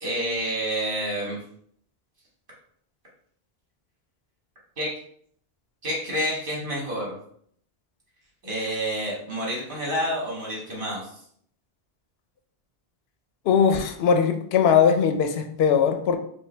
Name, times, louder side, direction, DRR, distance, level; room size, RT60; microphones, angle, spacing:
voice 1, 0.0-1.4 4.8-4.9 5.8-7.2 8.4-11.2, equal, 55° right, -5 dB, 1.7 m, -28 dB
voice 2, 13.5-16.2, left 7 dB, 80° left, 6 dB, 0.8 m, -20 dB
5.1 x 2.2 x 3.2 m, 0.64 s
omnidirectional pair, 1.0 m